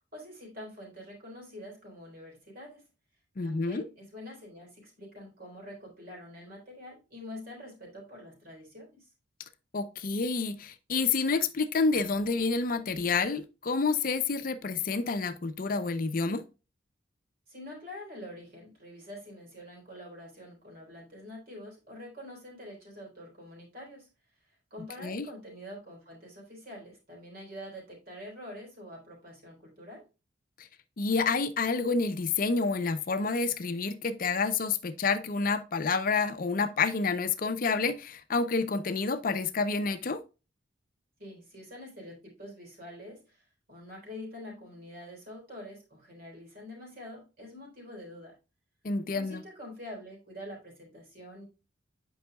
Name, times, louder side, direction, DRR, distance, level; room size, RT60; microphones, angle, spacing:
voice 1, 0.1-2.8 3.4-9.0 17.5-24.1 24.7-30.1 41.2-43.4 43.7-48.3 49.1-51.4, left 1 dB, 50° right, 3.6 m, -46 dB
voice 2, 3.4-3.8 9.7-16.4 25.0-25.3 31.0-40.2 48.8-49.4, left 4 dB, 45° left, 0.5 m, -29 dB
8.8 x 5.4 x 2.3 m
head